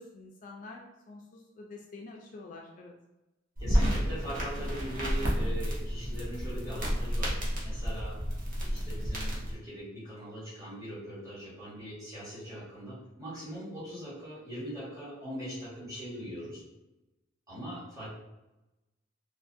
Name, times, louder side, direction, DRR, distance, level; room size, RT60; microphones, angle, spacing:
voice 1, 0.0-2.9, left 3 dB, 40° left, -1 dB, 0.3 m, -47 dB
voice 2, 3.6-8.2 8.6-16.6 17.5-18.1, equal, 15° right, -9 dB, 1.1 m, -41 dB
sound 1, 3.6-9.6, equal, 45° right, 0.7 m, -31 dB
2.5 x 2.4 x 2.5 m, 1.0 s
head